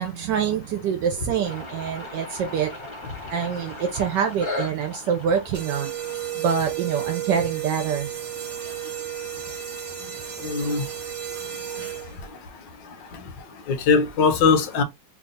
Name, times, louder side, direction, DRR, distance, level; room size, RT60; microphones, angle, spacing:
voice 1, 0.0-2.7 3.3-5.9 6.4-8.1, right 7 dB, 75° right, 1.2 m, -25 dB
sound 1, 1.4-7.9, left 2 dB, 35° left, 0.4 m, -38 dB
sound 2, 5.5-12.3, right 11 dB, 40° right, 1.0 m, -33 dB
voice 2, 10.4-10.9 13.1-13.3 13.7-14.8, left 5 dB, 80° left, 1.4 m, -21 dB
3.4 x 2.3 x 3.9 m
omnidirectional pair, 2.0 m